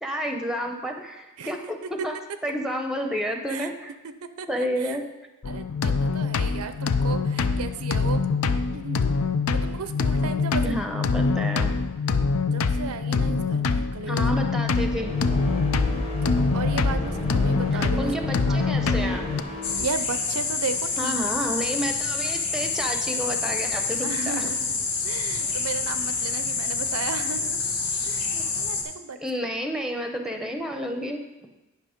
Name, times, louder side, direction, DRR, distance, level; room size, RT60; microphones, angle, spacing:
voice 1, 0.0-1.8 2.0-2.1 2.4-3.9 4.5-5.0 10.6-11.7 14.1-15.1 15.5-15.6 18.0-19.5 21.0-24.5 28.3-28.4 29.2-31.2, equal, ahead, 4 dB, 0.7 m, -30 dB
voice 2, 1.4-1.9 3.5-3.7 4.0-5.0 5.5-8.2 8.7-9.0 9.5-10.8 12.5-14.3 16.2-18.0 18.5-18.9 19.8-21.2 24.0-24.7 25.0-27.6 28.0-29.2, right 5 dB, 85° right, 10 dB, 0.6 m, -35 dB
sound 1, 5.4-19.4, left 4 dB, 70° left, 0.5 m, -25 dB
sound 2, 14.6-19.9, left 1 dB, 30° left, 1.4 m, -31 dB
sound 3, 19.6-28.8, left 4 dB, 85° left, 1.5 m, -27 dB
10.5 x 5.6 x 5.1 m, 1.0 s
head